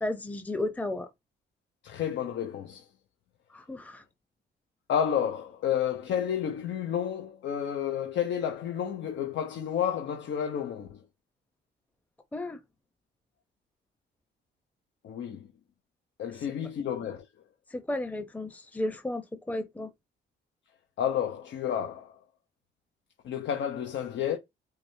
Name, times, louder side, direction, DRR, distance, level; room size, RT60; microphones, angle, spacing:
voice 1, 0.0-1.1 3.5-4.0 12.3-12.6 17.7-19.9, left 1 dB, 10° left, 0.7 m, -33 dB
voice 2, 1.8-2.8 4.9-11.0 15.0-15.5 16.2-17.2 21.0-22.2 23.2-24.4, left 9 dB, 65° left, 0.8 m, -30 dB
4.8 x 2.2 x 2.7 m
cardioid pair, 90°, 20 cm